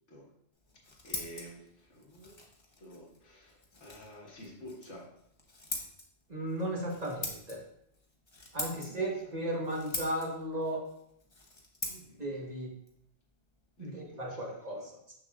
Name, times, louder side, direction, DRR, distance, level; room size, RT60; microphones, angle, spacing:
Scissors, 0.5-14.1, left 2 dB, 25° left, 0.9 m, -45 dB
voice 1, 1.0-2.4 2.8-5.1 8.6-9.4 11.9-12.3 13.8-14.9, equal, 90° left, -2 dB, 1.8 m, -51 dB
voice 2, 6.3-7.6 8.5-10.9 12.2-12.8 13.8-15.1, right 1 dB, 40° right, -2 dB, 1.3 m, -35 dB
6.7 x 6.3 x 2.4 m, 0.73 s
omnidirectional pair, 1.2 m